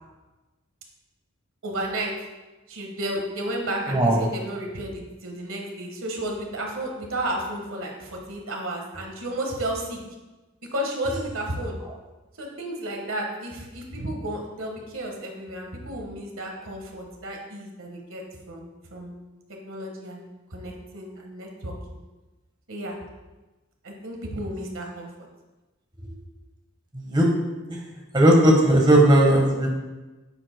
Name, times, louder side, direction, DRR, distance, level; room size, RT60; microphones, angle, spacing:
voice 1, 1.6-2.1 2.7-10.0 10.7-11.8 12.4-18.2 18.5-19.2 19.6-22.0 22.7-22.9 23.8-25.1, right 1 dB, 80° right, 1 dB, 1.5 m, -32 dB
voice 2, 3.9-4.2 26.9-27.3 27.7-27.8 28.1-29.7, right 1 dB, 20° right, 0 dB, 1.3 m, -17 dB
9.5 x 7.4 x 2.2 m, 1.1 s
head